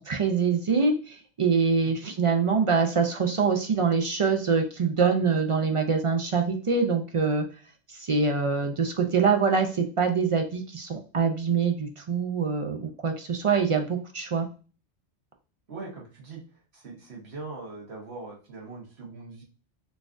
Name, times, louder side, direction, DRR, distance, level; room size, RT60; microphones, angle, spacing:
voice 1, 0.0-7.4 7.9-14.5, right 5 dB, 55° right, 4 dB, 0.3 m, -24 dB
voice 2, 15.7-16.4 16.7-19.4, right 3 dB, 90° right, -1 dB, 1.4 m, -41 dB
4.0 x 2.4 x 2.4 m, 0.36 s
omnidirectional pair, 1.1 m